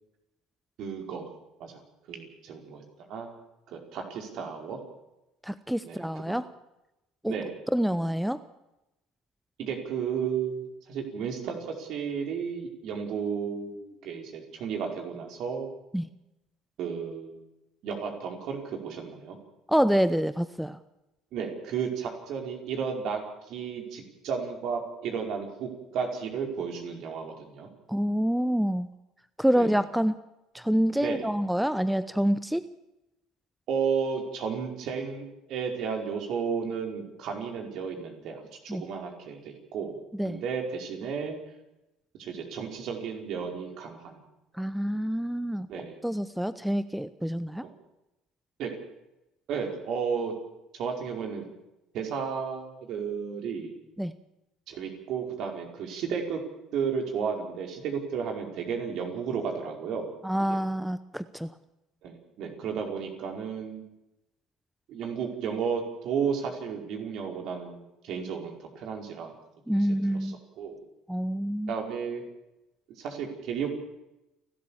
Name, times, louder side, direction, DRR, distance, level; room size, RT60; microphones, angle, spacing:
voice 1, 0.8-1.2 1.6-1.8 2.1-2.8 3.1-3.3 3.7-4.8 5.8-6.3 7.3-7.5 9.6-15.7 16.8-17.4 17.8-19.4 21.3-23.2 23.5-27.7 29.5-29.7 31.0-31.3 33.7-41.4 42.2-44.2 45.7-46.0 47.6-47.7 48.6-48.7 49.5-50.3 50.7-51.4 51.9-53.7 54.7-56.4 56.7-60.1 60.5-60.6 62.0-63.8 64.9-69.3 69.7-70.8 71.7-72.2 73.0-73.7, right 6 dB, 55° right, 3 dB, 4.9 m, -33 dB
voice 2, 5.4-6.5 7.2-7.3 7.7-8.4 15.9-16.1 19.7-20.8 27.9-28.9 29.4-30.2 30.5-32.6 38.7-38.8 40.2-40.4 44.6-45.7 46.0-47.6 54.0-54.1 60.2-61.5 69.7-70.4 71.1-71.7, equal, ahead, 14 dB, 0.8 m, -27 dB
30.0 x 13.0 x 7.3 m, 0.94 s
hypercardioid pair, 60°, 0 cm